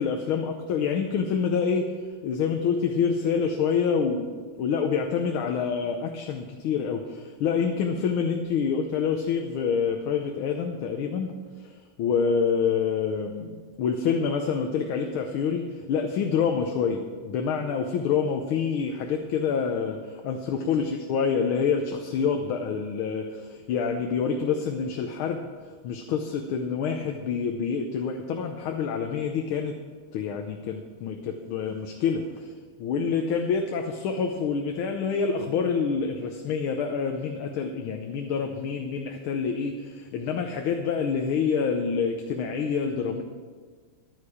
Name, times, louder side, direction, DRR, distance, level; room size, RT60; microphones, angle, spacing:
voice 1, 0.0-1.9 2.2-4.3 4.6-11.3 11.6-11.7 12.0-29.7 30.1-32.5 32.8-43.2, left 6 dB, 85° left, 4 dB, 1.7 m, -27 dB
14.5 x 10.0 x 5.0 m, 1.5 s
omnidirectional pair, 2.3 m